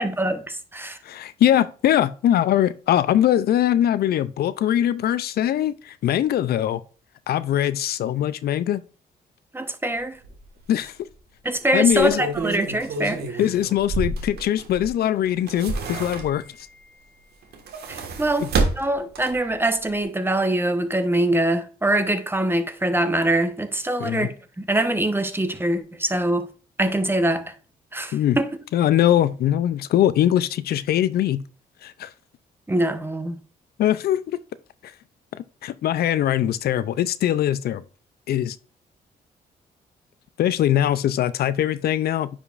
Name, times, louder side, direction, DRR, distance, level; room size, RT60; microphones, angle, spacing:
voice 1, 0.0-1.0 9.5-10.2 11.4-13.4 17.9-18.5 18.8-24.3 24.6-26.5 26.8-27.5 27.9-28.5 32.7-33.4, right 1 dB, 15° right, 1.0 m, -23 dB
voice 2, 1.0-6.8 7.3-8.8 10.7-11.1 11.7-12.2 13.4-16.4 18.4-18.5 24.0-24.3 28.1-28.4 28.7-31.4 31.8-32.1 33.8-34.4 35.6-37.8 38.3-38.6 40.4-42.3, left 11 dB, 75° left, 0.4 m, -21 dB
sound 1, 10.2-10.4 10.8-10.9 11.8-14.9 15.3-16.6 17.4-19.5 19.9-20.0, right 3 dB, 75° right, 1.6 m, -29 dB
9.8 x 5.0 x 2.5 m
cardioid pair, 85°, 16 cm